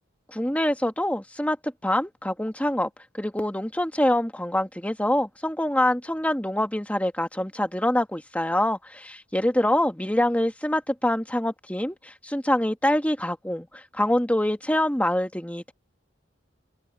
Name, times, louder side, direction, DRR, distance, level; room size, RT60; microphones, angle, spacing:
voice 1, 0.3-2.9 3.1-15.7, left 1 dB, 10° left, 1.8 m, -25 dB
open air
head